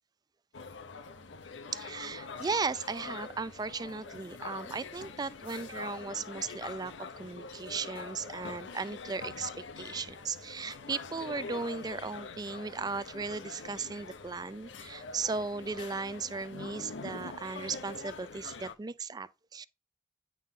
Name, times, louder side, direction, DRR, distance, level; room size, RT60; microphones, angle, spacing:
sound 1, 0.5-18.7, left 4 dB, 85° left, 0.8 m, -44 dB
voice 1, 1.7-19.7, right 4 dB, 20° right, 0.4 m, -37 dB
9.3 x 3.8 x 3.7 m
head